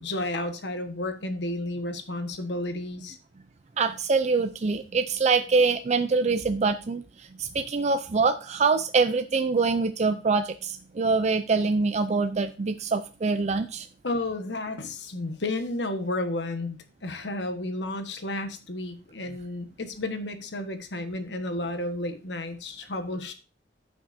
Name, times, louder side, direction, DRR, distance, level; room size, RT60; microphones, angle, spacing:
voice 1, 0.0-3.2 14.0-23.3, left 2 dB, 85° left, 7 dB, 1.4 m, -32 dB
voice 2, 3.8-13.9, right 4 dB, 40° right, 9 dB, 0.5 m, -24 dB
14.5 x 6.0 x 2.7 m, 0.34 s
head